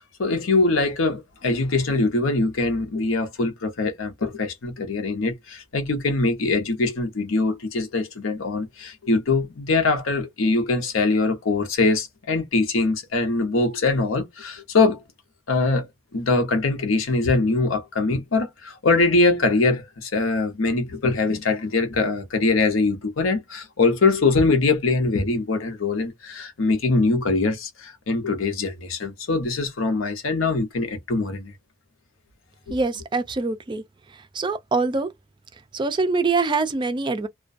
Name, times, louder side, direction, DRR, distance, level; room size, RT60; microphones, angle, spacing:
voice 1, 0.2-15.0 15.5-15.9 16.1-31.5 32.7-32.8, left 3 dB, 85° left, 0.8 m, -22 dB
voice 2, 32.7-33.8 34.3-35.1 35.7-37.3, right 3 dB, 25° right, 0.3 m, -24 dB
2.4 x 2.2 x 2.4 m
head